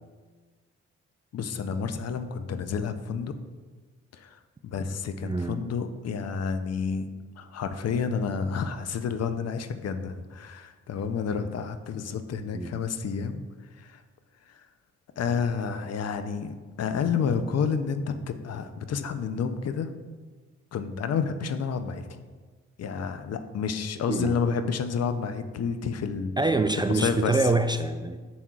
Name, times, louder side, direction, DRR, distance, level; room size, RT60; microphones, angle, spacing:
voice 1, 1.3-3.3 4.1-7.1 7.4-13.4 13.7-14.0 14.5-14.6 15.2-19.9 20.7-22.2 22.8-26.4 26.9-27.6, left 6 dB, 55° left, 9 dB, 0.6 m, -30 dB
voice 2, 5.2-5.6 12.5-12.8 24.1-24.4 26.4-28.2, right 3 dB, 15° right, 8 dB, 0.3 m, -25 dB
7.2 x 6.1 x 2.4 m, 1.4 s
hypercardioid pair, 45°, 31 cm